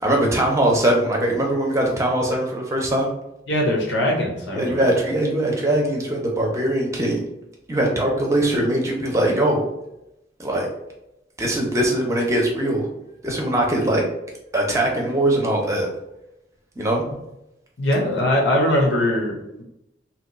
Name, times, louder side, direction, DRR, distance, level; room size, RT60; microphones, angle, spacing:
voice 1, 0.0-3.1 4.5-7.2 7.7-9.7 10.4-10.7 11.4-12.9 13.2-14.0 14.5-15.9 16.8-17.0, right 1 dB, 15° right, -1 dB, 0.6 m, -21 dB
voice 2, 3.5-4.8 17.8-19.6, left 1 dB, 90° left, -1 dB, 0.8 m, -21 dB
2.8 x 2.3 x 3.9 m, 0.87 s
head